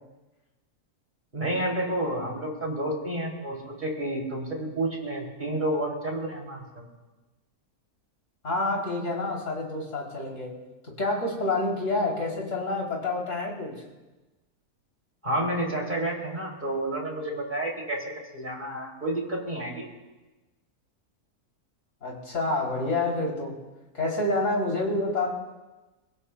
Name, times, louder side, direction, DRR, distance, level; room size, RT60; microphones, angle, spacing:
voice 1, 1.3-6.6 15.2-18.0 18.3-19.9, right 1 dB, 30° right, -1 dB, 3.1 m, -30 dB
voice 2, 8.4-10.5 11.0-13.7 22.0-23.6 23.9-25.3, left 2 dB, 55° left, -2 dB, 3.6 m, -28 dB
29.5 x 17.0 x 2.3 m, 1.1 s
omnidirectional pair, 1.6 m